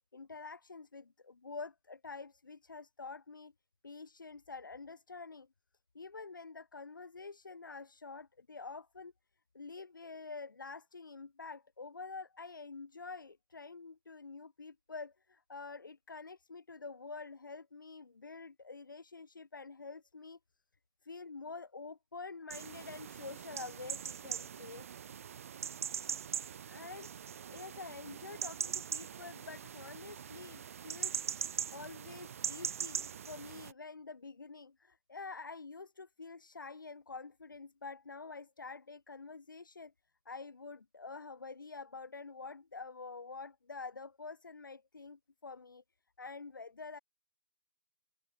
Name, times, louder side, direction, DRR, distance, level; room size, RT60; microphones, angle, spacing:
voice 1, 0.1-3.5 3.8-5.5 5.9-9.1 9.5-20.4 21.0-24.9 26.7-27.1 27.5-39.9 40.3-45.8 46.2-47.0, left 4 dB, 85° left, 5.5 m, -47 dB
sound 1, 22.5-33.7, right 8 dB, 45° right, 2.7 m, -41 dB
open air
hypercardioid pair, 160°, 11 cm